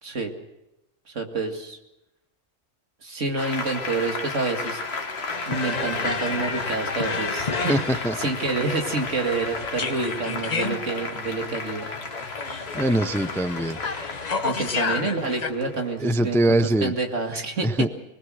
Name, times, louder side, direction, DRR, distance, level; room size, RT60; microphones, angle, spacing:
voice 1, 0.0-0.3 1.1-1.8 3.0-4.8 5.5-11.9 14.4-17.9, right 3 dB, 75° right, 3 dB, 2.5 m, -28 dB
Applause, 3.4-16.4, left 3 dB, 55° left, 1.8 m, -34 dB
sound 1, 5.3-15.5, left 4 dB, 35° left, 1.0 m, -31 dB
voice 2, 7.7-8.2 12.7-13.8 16.0-16.9 17.6-17.9, right 1 dB, 5° left, 11 dB, 0.6 m, -22 dB
24.0 x 20.5 x 6.4 m, 0.94 s
omnidirectional pair, 1.3 m